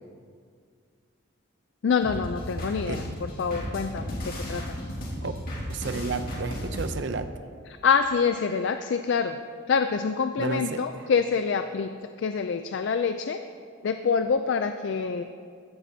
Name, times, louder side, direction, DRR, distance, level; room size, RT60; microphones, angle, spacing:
voice 1, 1.8-4.7 7.8-9.4 9.7-13.4 13.8-15.2, left 5 dB, 60° left, 8 dB, 0.3 m, -26 dB
sound 1, 2.0-6.9, equal, 45° left, 2.0 m, -34 dB
voice 2, 5.7-7.3 10.4-11.1, right 4 dB, 55° right, 10 dB, 0.5 m, -32 dB
15.0 x 10.0 x 2.8 m, 2.1 s
head